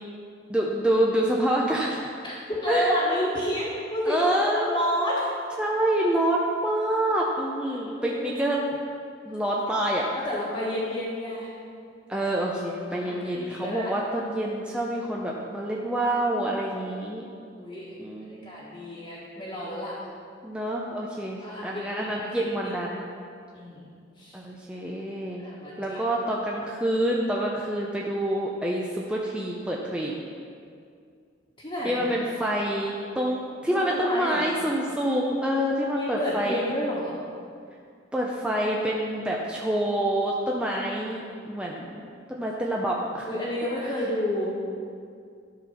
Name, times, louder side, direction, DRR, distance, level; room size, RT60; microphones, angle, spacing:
voice 1, 0.5-2.1 2.7-3.0 4.0-4.8 5.6-8.6 9.3-10.1 12.1-17.3 18.0-18.4 20.4-23.1 24.3-25.4 25.8-30.1 31.8-36.6 38.1-41.2 41.5-42.0 42.3-43.3, right 1 dB, 5° right, -3 dB, 0.6 m, -27 dB
voice 2, 2.6-5.3 7.7-8.4 10.1-11.5 12.9-13.9 17.6-18.0 18.4-20.0 21.4-22.7 23.5-23.9 24.2-24.4 25.4-26.0 31.6-32.0 33.7-34.4 36.0-37.2 43.3-44.6, left 1 dB, 25° left, -9 dB, 1.5 m, -30 dB
12.5 x 4.4 x 5.8 m, 2.3 s
head